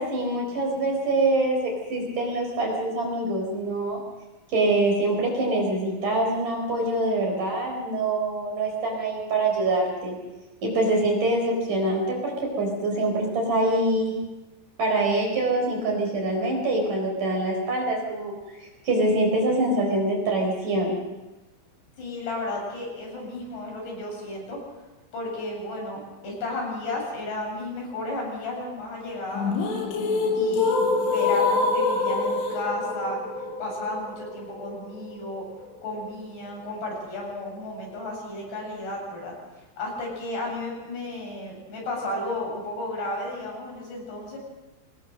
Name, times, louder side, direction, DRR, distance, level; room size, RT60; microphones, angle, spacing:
voice 1, 0.0-4.0 4.5-10.2 10.6-14.1 14.8-18.3 18.8-21.0, right 2 dB, 40° right, 0 dB, 5.4 m, -24 dB
voice 2, 22.0-24.6 25.1-29.7 30.3-33.2 33.6-35.5 35.8-39.3 39.8-44.4, left 2 dB, 55° left, -1 dB, 9.6 m, -33 dB
sound 1, 29.4-35.4, left 3 dB, 75° left, 5.5 m, -25 dB
25.0 x 20.0 x 6.6 m, 1.1 s
omnidirectional pair, 5.7 m